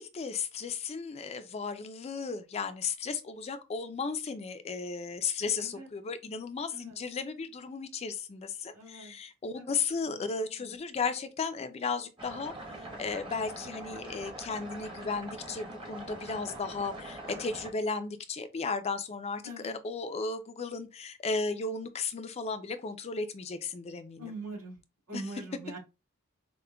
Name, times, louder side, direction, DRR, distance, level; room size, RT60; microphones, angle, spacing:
voice 1, 0.0-12.5 13.0-24.3 25.1-25.2, left 4 dB, 30° left, 0.3 m, -35 dB
voice 2, 8.7-9.2 9.5-9.7 10.0-10.3 10.5-10.7 19.4-19.8 24.2-24.8 25.1-25.8, right 2 dB, 90° right, 1.9 m, -43 dB
sound 1, 12.2-17.7, right 1 dB, 20° right, 0.8 m, -43 dB
4.9 x 2.1 x 2.2 m
head